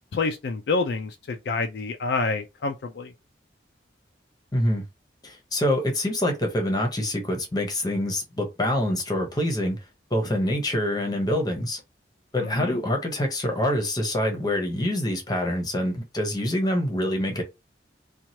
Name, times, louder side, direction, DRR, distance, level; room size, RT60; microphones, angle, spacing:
voice 1, 0.1-3.1 12.4-12.8, left 3 dB, 60° left, 0.4 m, -28 dB
voice 2, 4.5-4.8 5.2-9.8 10.1-11.8 12.3-17.4, left 1 dB, 20° left, 0.9 m, -25 dB
3.0 x 2.4 x 2.8 m
head